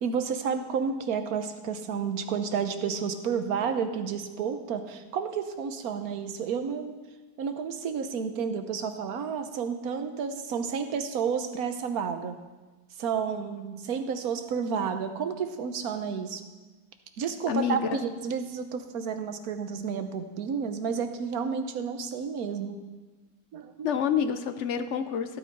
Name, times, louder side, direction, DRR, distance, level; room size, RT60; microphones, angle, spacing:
voice 1, 0.0-7.0 7.4-12.4 13.0-16.4 17.2-22.8 23.5-23.9, right 6 dB, 65° right, 8 dB, 1.3 m, -31 dB
voice 2, 17.5-18.0 23.8-25.4, left 7 dB, 60° left, 9 dB, 0.7 m, -28 dB
15.5 x 9.0 x 4.6 m, 1.2 s
omnidirectional pair, 1.8 m